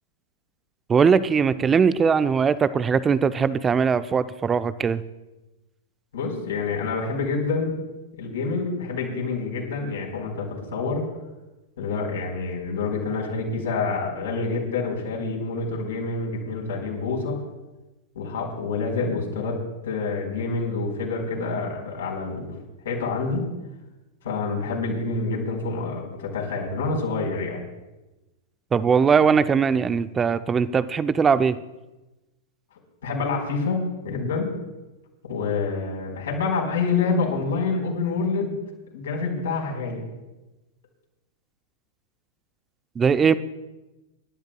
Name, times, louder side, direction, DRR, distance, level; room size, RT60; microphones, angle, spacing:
voice 1, 0.9-5.0 28.7-31.6 43.0-43.4, right 6 dB, 20° right, 15 dB, 0.5 m, -20 dB
voice 2, 6.1-7.8 8.2-11.0 11.8-17.4 18.1-22.6 22.8-23.5 24.2-27.6 33.0-34.5 35.2-38.6 38.9-40.0, left 4 dB, 65° left, 0 dB, 4.5 m, -27 dB
27.5 x 12.0 x 2.3 m, 1.1 s
figure-of-eight pair, 95°, 0 cm